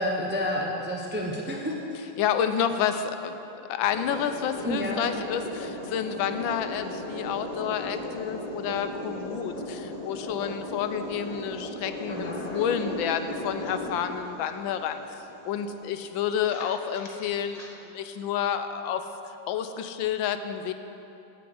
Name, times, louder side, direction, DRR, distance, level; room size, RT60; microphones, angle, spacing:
voice 1, 0.0-2.0 4.6-5.0 12.1-12.4, equal, 10° right, -1 dB, 0.5 m, -30 dB
voice 2, 2.2-17.6 17.8-19.1 19.5-20.7, left 8 dB, 85° left, 9 dB, 1.4 m, -30 dB
sound 1, 3.9-17.7, left 1 dB, 25° left, 1.0 m, -37 dB
8.6 x 7.8 x 7.9 m, 2.8 s
omnidirectional pair, 2.1 m